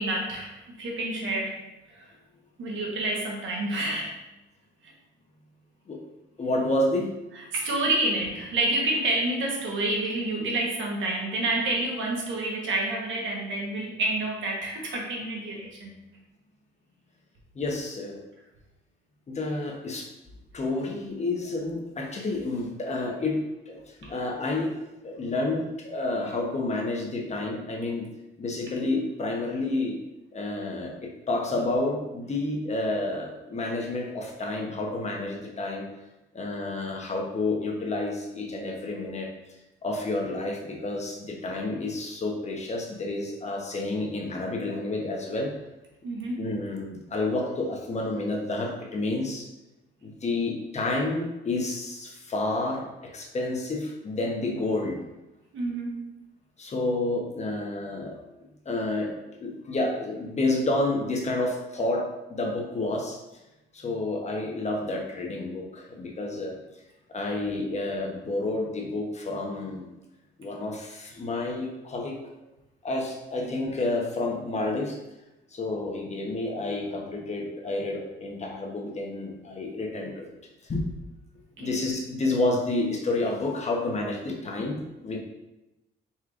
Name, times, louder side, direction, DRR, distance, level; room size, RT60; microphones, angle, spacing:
voice 1, 0.0-1.6 1.9-2.1 2.6-4.2 4.8-4.9 7.3-15.9 24.0-24.1 46.0-46.4 55.5-56.1 73.4-73.5 81.6-81.7, right 2 dB, 75° right, -1 dB, 1.2 m, -29 dB
voice 2, 6.4-7.1 17.5-18.2 19.3-20.1 20.5-23.4 23.7-24.7 25.0-28.1 28.4-30.0 30.3-35.8 36.3-39.3 39.8-45.5 46.4-49.5 50.0-55.0 56.6-58.2 58.6-63.2 63.7-66.6 67.1-69.9 70.4-72.2 72.8-75.0 75.5-80.3 80.6-80.8 81.6-85.2, left 2 dB, 35° left, 0 dB, 1.0 m, -30 dB
4.6 x 4.3 x 2.5 m, 0.97 s
cardioid pair, 90°, 20 cm